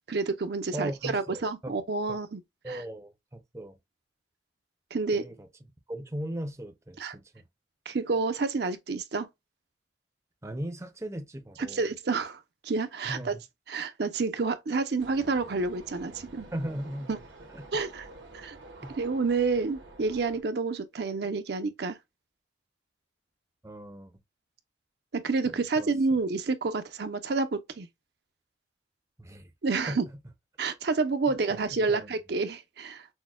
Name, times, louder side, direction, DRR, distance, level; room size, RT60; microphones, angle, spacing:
voice 1, 0.1-2.4 2.7-2.8 4.9-5.3 7.0-7.2 7.9-9.3 11.7-13.3 13.7-16.5 17.1-17.2 17.7-18.1 18.3-18.6 19.0-22.0 25.1-27.9 29.6-30.0 30.6-33.1, right 4 dB, 60° right, 0.6 m, -29 dB
voice 2, 0.7-1.8 2.1-2.2 2.6-3.8 5.1-5.5 5.9-7.4 10.4-11.8 13.0-13.4 16.5-17.2 17.5-17.7 18.8-18.9 23.6-24.1 25.5-25.9 29.2-29.5 29.9-30.0 31.5-32.1, right 1 dB, 15° right, 0.5 m, -38 dB
sound 1, 15.0-20.4, right 2 dB, 90° right, 1.4 m, -49 dB
6.2 x 2.1 x 2.2 m
head